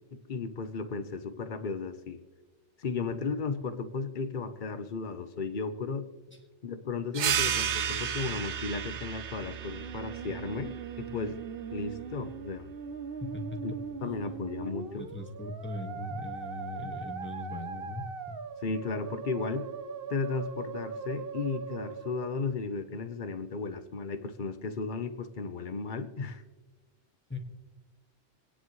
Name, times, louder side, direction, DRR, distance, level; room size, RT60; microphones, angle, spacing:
voice 1, 0.1-2.2 2.8-6.1 6.6-11.4 11.7-12.7 13.6-13.7 14.0-15.1 18.6-19.7 20.1-26.4, left 4 dB, 45° left, 10 dB, 1.0 m, -35 dB
sound 1, 7.1-12.3, right 8 dB, 75° right, 1.0 m, -33 dB
Musical instrument, 9.5-22.5, right 6 dB, 55° right, 1.0 m, -40 dB
voice 2, 13.2-13.8 14.2-14.3 14.9-18.4 27.3-27.4, left 2 dB, 10° left, 1 dB, 1.6 m, -39 dB
28.0 x 9.9 x 3.2 m, 1.2 s
omnidirectional pair, 1.2 m